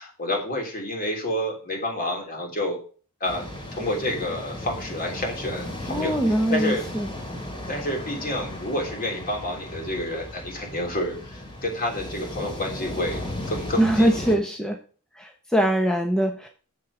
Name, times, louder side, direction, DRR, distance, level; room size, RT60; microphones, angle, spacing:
voice 1, 0.0-2.8 3.2-6.9 7.7-14.4, left 1 dB, 40° left, 1 dB, 3.3 m, -29 dB
sound 1, 3.2-14.3, left 1 dB, 25° left, 2.8 m, -36 dB
voice 2, 5.9-7.1 13.8-14.8 15.2-16.5, right 1 dB, 5° left, 2 dB, 0.9 m, -22 dB
7.6 x 7.5 x 4.9 m, 0.38 s
head